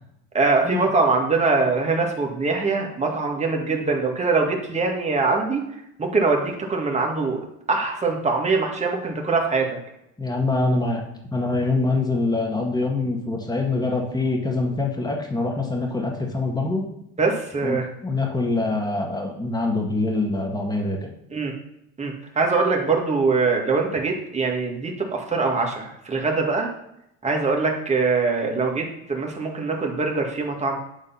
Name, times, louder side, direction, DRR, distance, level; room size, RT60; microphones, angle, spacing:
voice 1, 0.3-5.6 6.0-9.8 17.2-17.9 21.3-21.5 22.0-26.7 27.2-30.8, right 4 dB, 20° right, 1 dB, 1.9 m, -23 dB
voice 2, 10.2-11.0 11.3-16.9 17.6-21.1, left 2 dB, 10° left, 1 dB, 1.9 m, -24 dB
9.7 x 3.7 x 5.7 m, 0.81 s
cardioid pair, 105°, 32 cm